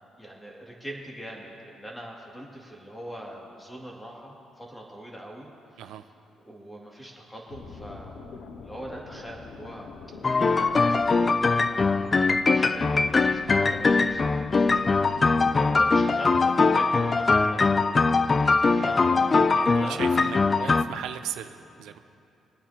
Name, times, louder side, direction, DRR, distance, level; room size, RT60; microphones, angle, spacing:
voice 1, 0.2-5.8 6.4-8.3 8.6-9.9 10.4-11.9 12.3-17.8 18.1-20.2, right 1 dB, 10° left, -2 dB, 2.5 m, -42 dB
sound 1, 7.5-15.9, left 5 dB, 70° left, 0.6 m, -44 dB
sound 2, 10.2-20.8, left 4 dB, 30° left, 0.4 m, -22 dB
voice 2, 19.5-22.0, right 10 dB, 85° right, 9 dB, 0.5 m, -37 dB
25.0 x 9.0 x 2.9 m, 2.6 s
cardioid pair, 90°, 0 cm